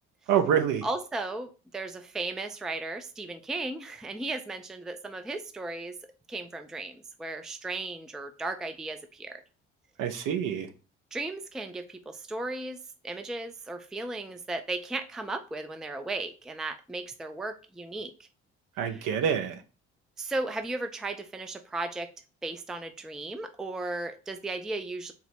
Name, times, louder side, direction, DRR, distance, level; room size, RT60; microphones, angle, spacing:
voice 1, 0.3-0.8 10.0-10.7 18.8-19.6, right 8 dB, 60° right, 8 dB, 0.7 m, -26 dB
voice 2, 0.8-6.0 6.3-9.4 11.1-12.8 13.0-18.1 18.8-19.1 20.2-22.1 22.4-25.1, right 2 dB, ahead, 8 dB, 0.4 m, -35 dB
3.9 x 2.0 x 4.3 m, 0.34 s
hypercardioid pair, 50°, 35 cm